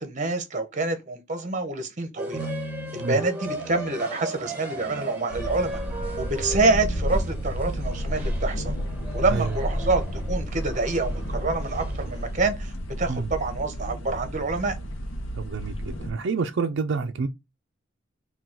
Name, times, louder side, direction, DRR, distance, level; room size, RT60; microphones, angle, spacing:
voice 1, 0.0-2.5 2.9-5.8 6.2-8.7 9.1-14.8, right 3 dB, 40° right, 0.8 m, -27 dB
sound 1, 2.2-12.4, right 1 dB, 10° right, 1.3 m, -37 dB
sound 2, 5.3-16.1, equal, 90° left, 0.7 m, -31 dB
voice 2, 15.4-17.3, right 4 dB, 60° right, 0.4 m, -28 dB
3.8 x 2.3 x 4.3 m
head